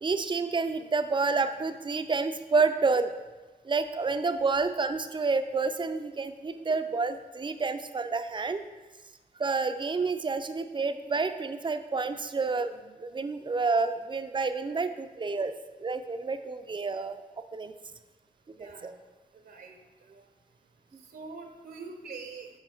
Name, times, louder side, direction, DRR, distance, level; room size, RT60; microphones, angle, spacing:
voice 1, 0.0-3.1 3.6-8.6 9.4-15.5 15.8-17.2 17.5-17.7 18.6-18.9 20.9-21.0, right 4 dB, 30° right, 9 dB, 0.5 m, -29 dB
voice 2, 18.6-18.9 19.4-19.8 20.1-20.2 21.1-22.5, right 4 dB, 75° right, 4 dB, 0.9 m, -43 dB
7.7 x 5.2 x 4.5 m, 1.2 s
wide cardioid pair, 95°, 16 cm